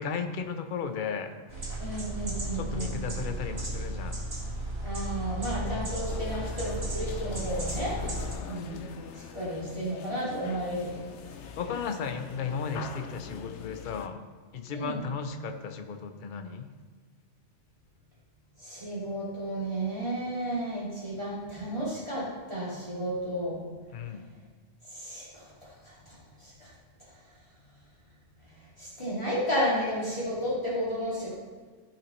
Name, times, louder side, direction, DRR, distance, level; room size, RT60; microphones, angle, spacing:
voice 1, 0.0-1.3 2.5-4.2 5.6-6.0 11.6-14.2 14.5-16.7 23.9-24.3, left 6 dB, 50° left, 7 dB, 0.8 m, -35 dB
sound 1, 1.5-8.3, right 1 dB, 60° right, 2.0 m, -34 dB
voice 2, 1.8-3.0 4.8-8.0 8.4-8.8 9.1-10.9 14.7-15.0 18.6-23.6 24.9-26.7 28.8-31.3, equal, 25° left, -8 dB, 2.7 m, -33 dB
sound 2, 6.1-14.1, left 6 dB, 75° left, 0.9 m, -43 dB
15.0 x 5.8 x 3.2 m, 1.5 s
omnidirectional pair, 1.2 m